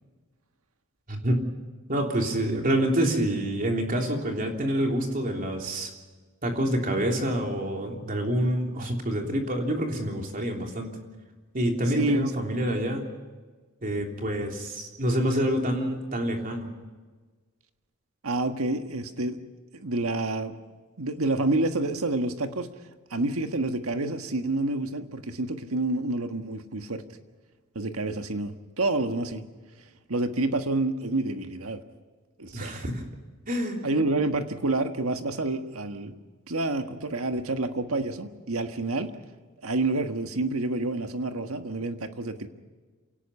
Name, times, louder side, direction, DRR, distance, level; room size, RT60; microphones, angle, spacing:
voice 1, 1.1-1.4 1.9-5.9 6.4-10.9 11.5-13.1 13.8-16.7 32.5-33.0 33.5-33.9, right 1 dB, 40° right, 2 dB, 3.3 m, -27 dB
voice 2, 11.9-12.3 18.2-19.4 19.7-20.6 21.0-22.7 23.1-27.0 27.7-29.4 30.1-31.8 32.4-32.9 33.8-36.2 36.5-39.1 39.6-42.5, right 2 dB, 80° right, 7 dB, 1.6 m, -28 dB
28.0 x 18.0 x 5.6 m, 1.4 s
head